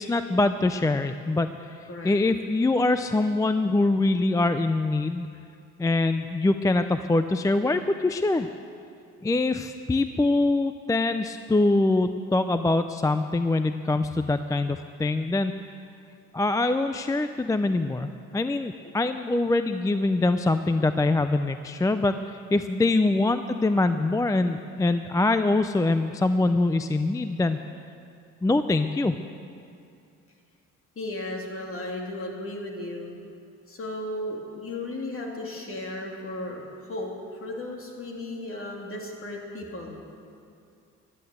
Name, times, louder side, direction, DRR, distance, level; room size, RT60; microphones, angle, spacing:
voice 1, 0.0-1.7 2.0-5.3 5.8-8.5 9.2-15.5 16.3-27.6 28.4-29.2, left 2 dB, 10° left, 9 dB, 0.4 m, -24 dB
voice 2, 31.0-33.2 33.7-40.0, left 1 dB, 45° left, 0 dB, 2.8 m, -35 dB
12.5 x 10.5 x 8.0 m, 2.4 s
cardioid pair, 90°, 30 cm